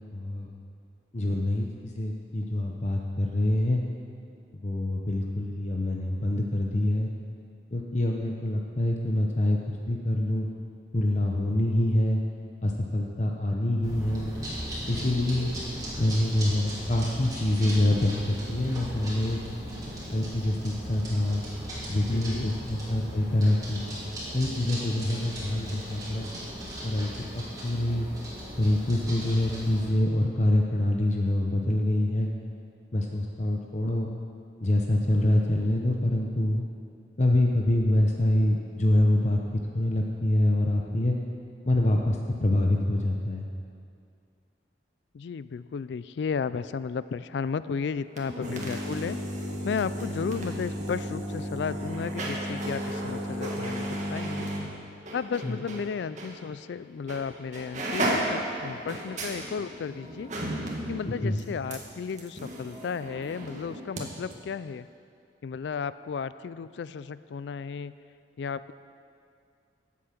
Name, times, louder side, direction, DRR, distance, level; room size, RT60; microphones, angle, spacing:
voice 1, 0.1-0.5 1.1-3.8 4.6-7.1 7.7-10.5 10.9-12.2 12.6-14.3 14.9-15.5 16.0-19.4 20.1-21.4 21.9-23.8 24.3-26.3 26.8-28.1 28.6-32.3 32.9-34.1 34.6-36.6 37.2-39.4 39.7-41.2 41.6-43.5 55.4-55.6 61.0-61.4, left 1 dB, 40° left, 1 dB, 0.8 m, -25 dB
sound 1, 13.8-29.9, equal, 20° right, 3.3 m, -37 dB
voice 2, 22.1-22.6 45.1-49.2 49.6-54.5 55.1-60.3 60.9-64.9 65.4-67.9 68.4-68.7, left 6 dB, 75° left, 15 dB, 0.3 m, -34 dB
sound 2, 48.1-55.8 56.2-56.3 57.1-57.3 57.5-64.0 64.3-64.4, right 1 dB, 40° right, 1.9 m, -33 dB
15.5 x 8.4 x 6.0 m, 2.4 s
head